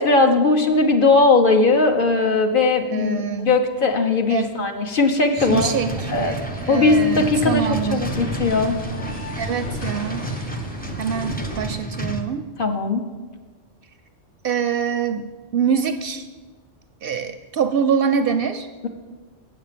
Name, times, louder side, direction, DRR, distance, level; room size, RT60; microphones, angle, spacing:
voice 1, 0.0-5.7 6.1-6.4 6.7-8.8 12.6-13.0, left 3 dB, 50° left, 5 dB, 1.0 m, -18 dB
voice 2, 2.9-3.5 4.3-4.5 5.4-8.0 9.4-10.3 11.0-12.5 14.4-15.3 15.5-16.2 17.0-18.7, right 7 dB, 60° right, 8 dB, 0.6 m, -24 dB
sound 1, 5.4-12.2, right 1 dB, 10° left, 0.6 m, -30 dB
sound 2, 5.8-11.7, left 1 dB, 85° left, 2.6 m, -35 dB
7.9 x 7.3 x 7.4 m, 1.4 s
omnidirectional pair, 1.2 m